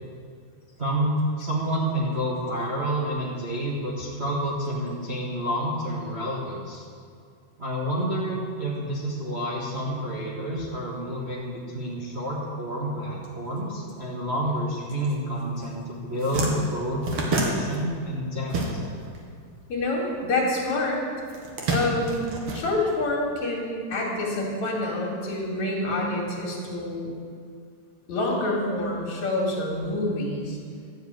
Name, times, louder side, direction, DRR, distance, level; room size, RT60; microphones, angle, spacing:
voice 1, 0.8-6.8 7.6-18.5, equal, 30° right, -5 dB, 1.2 m, -29 dB
sound 1, 15.6-15.7 16.0-19.2 19.4-20.6 21.2-23.3, right 2 dB, 50° right, 2.0 m, -29 dB
voice 2, 19.7-21.0 21.7-27.1 28.1-30.6, left 2 dB, 55° left, -2 dB, 3.5 m, -27 dB
12.5 x 7.4 x 9.0 m, 2.3 s
omnidirectional pair, 4.0 m